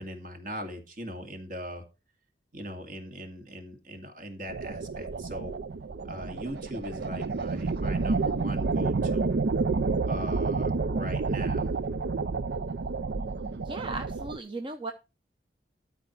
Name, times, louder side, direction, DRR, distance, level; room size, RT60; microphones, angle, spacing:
voice 1, 0.0-1.8 2.5-5.5 6.0-9.4 10.0-11.7, equal, 50° right, 5 dB, 2.3 m, -40 dB
sound 1, 4.5-14.4, right 4 dB, 70° right, 0.5 m, -29 dB
voice 2, 13.6-14.9, right 2 dB, 30° right, 6 dB, 0.8 m, -36 dB
12.5 x 4.7 x 5.8 m, 0.30 s
head